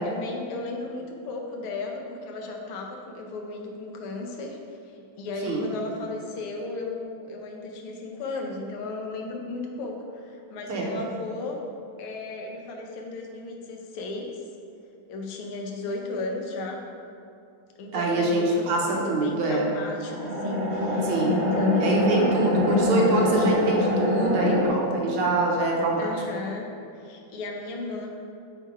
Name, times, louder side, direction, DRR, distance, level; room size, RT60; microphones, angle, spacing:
voice 1, 0.0-4.6 5.2-11.6 12.0-14.4 15.1-16.8 17.8-22.2 26.0-26.7 27.0-28.1, left 3 dB, 90° left, 1 dB, 1.8 m, -35 dB
voice 2, 17.9-19.7 21.0-21.4 21.8-26.1, right 2 dB, 80° right, -2 dB, 1.9 m, -24 dB
sound 1, 20.0-24.7, left 1 dB, 35° right, 0.6 m, -24 dB
6.6 x 4.0 x 4.6 m, 2.6 s
omnidirectional pair, 2.4 m